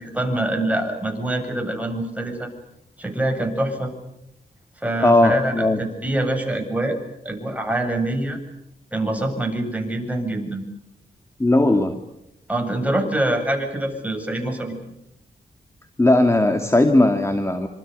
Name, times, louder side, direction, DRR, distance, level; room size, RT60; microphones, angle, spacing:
voice 1, 0.0-2.5 3.0-3.9 4.8-7.0 7.2-8.4 8.9-10.6 12.5-14.8, right 1 dB, 10° right, 3 dB, 7.7 m, -25 dB
voice 2, 5.0-5.8 11.4-12.0 16.0-17.7, left 1 dB, 15° left, 5 dB, 2.4 m, -17 dB
27.0 x 26.5 x 6.8 m, 0.83 s
wide cardioid pair, 90°, 16 cm